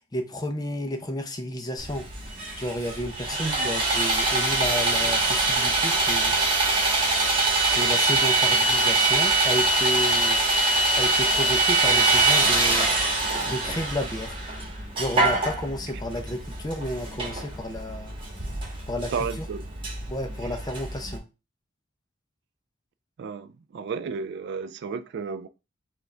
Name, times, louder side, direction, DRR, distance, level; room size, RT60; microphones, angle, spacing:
voice 1, 0.1-2.1 2.6-6.4 7.7-10.4 11.0-12.9 13.5-14.4 15.0-18.2 18.9-19.5 20.1-21.2, equal, 20° left, 0.6 m, -32 dB
Sawing, 1.8-21.2, right 2 dB, 25° right, 1.2 m, -24 dB
voice 2, 3.4-3.7 19.1-19.7 20.4-20.5 23.2-25.5, right 5 dB, 55° right, 0.3 m, -33 dB
4.9 x 2.4 x 3.2 m
head